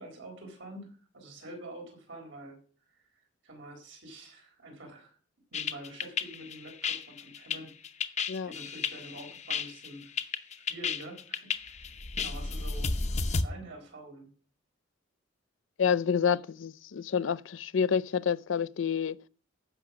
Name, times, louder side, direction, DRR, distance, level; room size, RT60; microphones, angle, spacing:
voice 1, 0.0-2.6 2.9-5.2 5.5-7.7 8.0-10.2 10.5-12.9 13.4-14.3, right 1 dB, 75° right, 4.2 m, -47 dB
sound 1, 5.5-13.4, left 4 dB, 35° left, 0.7 m, -33 dB
voice 2, 15.8-19.2, left 7 dB, 80° left, 0.5 m, -28 dB
14.5 x 5.9 x 5.9 m
head